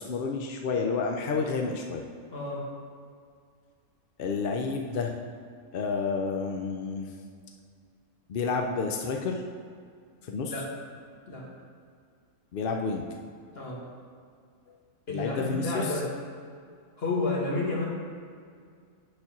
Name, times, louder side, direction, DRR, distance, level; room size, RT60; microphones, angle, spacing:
voice 1, 0.0-2.0 4.2-5.1 5.7-7.2 8.3-9.4 10.2-10.6 12.5-13.1 14.7-14.8 15.1-16.0, left 4 dB, 60° left, 2 dB, 0.6 m, -30 dB
voice 2, 2.3-2.7 10.5-10.7 11.3-11.5 13.6-13.8 15.1-16.0 17.0-17.8, left 3 dB, 45° left, -4 dB, 1.9 m, -30 dB
8.7 x 4.3 x 5.9 m, 2.2 s
omnidirectional pair, 1.5 m